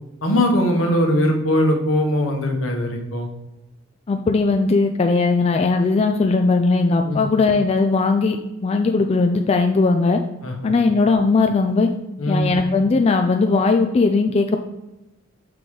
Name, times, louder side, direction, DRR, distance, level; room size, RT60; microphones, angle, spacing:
voice 1, 0.2-3.3 7.0-7.3 10.4-10.8 12.2-12.5, left 1 dB, 70° left, 2 dB, 1.2 m, -20 dB
voice 2, 4.1-10.2 10.6-11.9 12.3-14.6, left 3 dB, 30° left, 5 dB, 0.3 m, -18 dB
6.0 x 3.8 x 4.8 m, 0.97 s
head